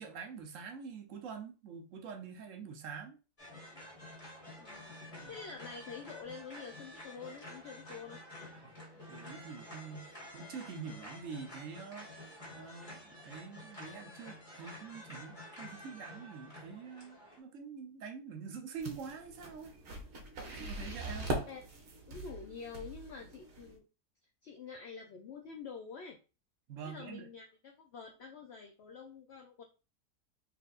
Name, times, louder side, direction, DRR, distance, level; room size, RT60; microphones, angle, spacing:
voice 1, 0.0-3.2 5.2-5.3 8.5-8.7 9.1-19.7 20.5-21.3 26.7-27.3, right 6 dB, 60° right, 1.0 m, -46 dB
sound 1, 3.4-17.4, left 1 dB, 30° left, 1.6 m, -50 dB
voice 2, 4.6-4.9 5.3-8.2 20.6-20.7 21.5-23.8 24.4-26.2 26.8-29.6, left 5 dB, 65° left, 0.6 m, -47 dB
sound 2, 18.8-23.8, right 2 dB, 85° right, 1.5 m, -41 dB
4.2 x 3.3 x 2.4 m
omnidirectional pair, 1.7 m